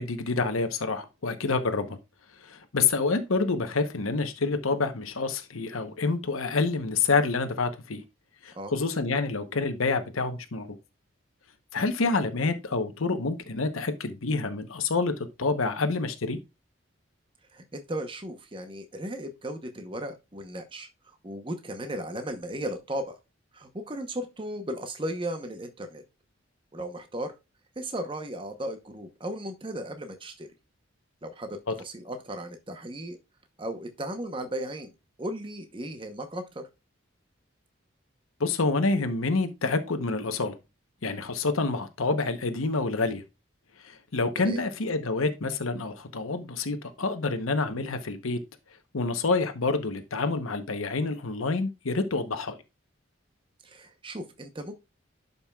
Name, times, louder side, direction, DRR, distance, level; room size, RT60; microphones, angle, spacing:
voice 1, 0.0-2.0 2.4-8.0 8.4-10.8 11.7-16.4 31.7-31.8 38.4-40.6 41.0-43.2 43.8-48.4 48.9-52.5, left 3 dB, 85° left, 0.9 m, -27 dB
voice 2, 17.5-23.2 23.5-26.0 26.7-27.3 27.8-30.5 31.2-33.2 33.6-34.9 35.2-36.7 44.4-44.6 53.6-54.7, right 1 dB, 25° right, 0.8 m, -36 dB
11.5 x 5.4 x 2.3 m
head